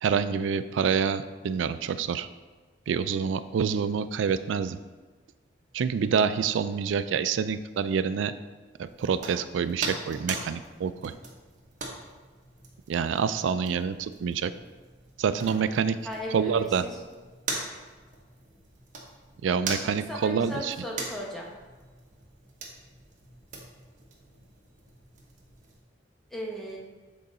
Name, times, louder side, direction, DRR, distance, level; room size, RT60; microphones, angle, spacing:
voice 1, 0.0-2.3 2.9-4.8 5.7-8.3 8.8-11.1 12.9-14.5 15.2-16.0 16.3-16.8 19.4-20.7, right 6 dB, 90° right, 13 dB, 0.3 m, -27 dB
sound 1, 8.8-25.8, right 3 dB, 45° right, 1.2 m, -41 dB
voice 2, 16.0-17.0 20.1-21.5 26.3-26.8, equal, ahead, -3 dB, 1.0 m, -36 dB
7.6 x 3.9 x 4.1 m, 1.3 s
head